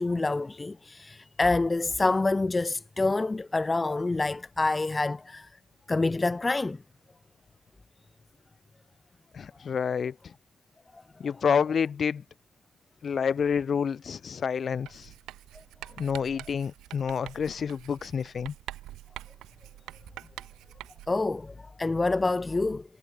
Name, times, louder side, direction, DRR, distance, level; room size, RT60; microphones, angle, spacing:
voice 1, 0.0-5.5 5.9-6.8 21.1-22.8, left 3 dB, 15° left, 0.4 m, -27 dB
voice 2, 9.3-10.3 11.2-12.2 13.0-15.1 16.0-18.5, left 6 dB, 40° left, 1.0 m, -28 dB
Writing, 14.9-21.3, right 15 dB, 85° right, 0.9 m, -46 dB
cardioid pair, 130°, 0 cm